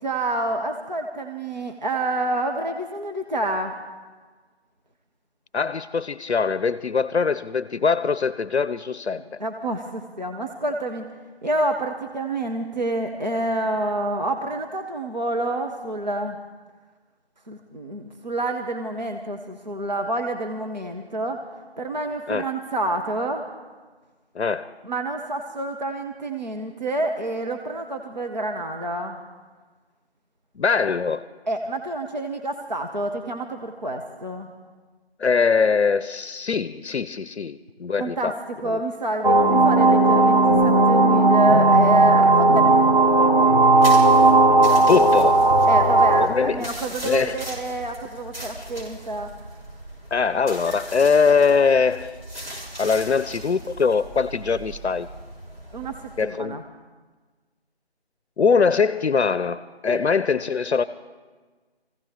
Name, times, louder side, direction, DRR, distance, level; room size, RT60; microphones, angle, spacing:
voice 1, 0.0-3.8 9.4-11.1 11.4-16.4 17.5-21.4 21.8-23.5 24.8-29.2 31.5-34.5 38.0-38.3 38.6-43.4 45.7-49.3 55.7-56.6 59.9-60.0, right 1 dB, 45° right, 3 dB, 0.8 m, -28 dB
voice 2, 5.5-9.4 22.3-22.5 24.3-24.7 30.6-31.3 35.2-38.3 38.6-38.8 44.9-45.4 46.2-46.7 47.0-47.4 50.1-52.2 52.8-55.1 56.2-56.6 58.4-60.8, left 5 dB, 85° left, 16 dB, 0.6 m, -22 dB
sound 1, 39.2-46.3, right 2 dB, 30° left, 0.7 m, -16 dB
sound 2, 43.8-56.2, right 1 dB, 60° right, 5.7 m, -38 dB
21.5 x 16.0 x 3.5 m, 1.4 s
figure-of-eight pair, 170°, 32 cm